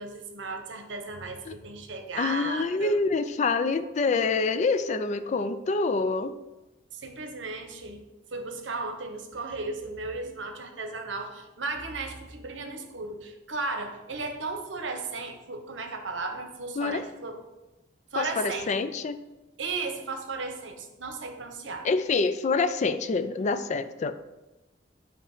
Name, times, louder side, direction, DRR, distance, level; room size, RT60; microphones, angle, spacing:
voice 1, 0.0-3.0 6.9-8.0 8.3-17.4 18.1-18.8 19.6-21.9, right 3 dB, 85° right, 5 dB, 0.9 m, -35 dB
voice 2, 2.2-6.4 16.8-17.0 18.2-19.2 21.8-24.2, left 4 dB, 40° left, 11 dB, 0.3 m, -26 dB
8.4 x 2.9 x 4.8 m, 1.0 s
head